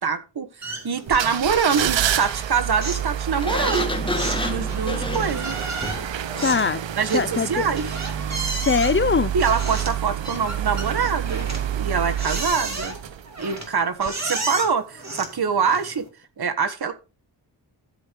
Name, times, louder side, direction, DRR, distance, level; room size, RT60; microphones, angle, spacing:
voice 1, 0.0-3.9 4.4-5.6 7.0-7.9 9.3-13.0 13.4-16.0 16.4-16.9, right 6 dB, 60° right, 1.4 m, -24 dB
sound 1, 0.6-1.3 1.6-2.0 2.3-16.1, right 2 dB, 40° right, 2.7 m, -34 dB
sound 2, 1.1-13.5 14.0-14.1, right 10 dB, 80° right, 0.7 m, -28 dB
Sliding door, 3.4-6.2, left 1 dB, 10° left, 1.6 m, -29 dB
voice 2, 6.4-6.8 7.1-7.5 8.6-9.3, left 5 dB, 30° left, 0.4 m, -21 dB
13.0 x 4.6 x 5.2 m
wide cardioid pair, 100°, 44 cm